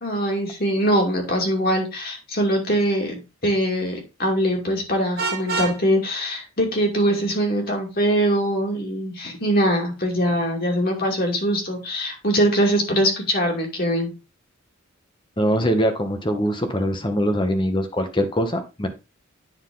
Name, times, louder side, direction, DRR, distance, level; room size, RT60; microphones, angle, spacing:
voice 1, 0.0-14.1, equal, 45° left, 0 dB, 2.5 m, -22 dB
Vehicle horn car horn honking, 5.2-5.8, right 4 dB, 50° right, 1.2 m, -26 dB
voice 2, 15.4-18.9, equal, 25° left, 6 dB, 1.1 m, -22 dB
9.9 x 4.2 x 3.7 m, 0.27 s
head